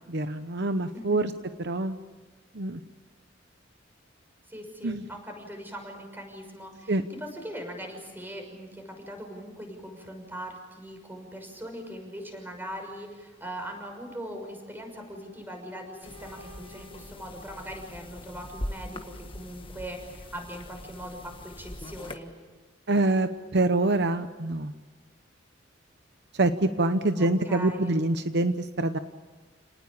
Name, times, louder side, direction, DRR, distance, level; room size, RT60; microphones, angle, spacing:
voice 1, 0.1-1.3 1.6-2.0 2.5-2.8 4.8-5.0 6.9-7.0 22.9-24.7 26.3-29.0, right 2 dB, 60° right, 10 dB, 0.9 m, -25 dB
voice 2, 0.9-1.3 4.5-22.3 27.2-27.9, equal, 10° right, 3 dB, 6.2 m, -40 dB
sound 1, 14.4-18.4, left 1 dB, 45° right, 5.5 m, -54 dB
sound 2, 16.0-22.2, left 1 dB, 30° left, 1.5 m, -41 dB
30.0 x 19.5 x 8.6 m, 1.3 s
head